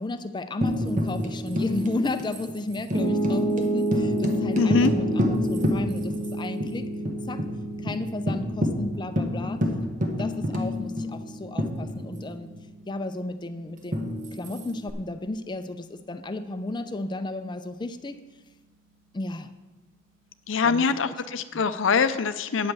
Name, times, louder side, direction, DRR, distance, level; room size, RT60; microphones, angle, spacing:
voice 1, 0.0-6.9 7.3-7.4 7.8-9.7 10.2-12.5 12.9-18.2 19.1-19.5 20.6-21.2, left 2 dB, 25° left, 10 dB, 0.5 m, -33 dB
Tambourine, 0.6-6.3 6.6-6.7 7.0-7.5 7.9-8.0 8.3-12.4 13.9-14.9, left 1 dB, 40° right, 1.1 m, -28 dB
Piano, 2.9-15.1, right 2 dB, 80° right, 2.2 m, -31 dB
voice 2, 4.6-4.9 20.5-22.7, left 5 dB, 70° left, 12 dB, 0.5 m, -23 dB
9.2 x 5.4 x 8.2 m, 1.2 s
head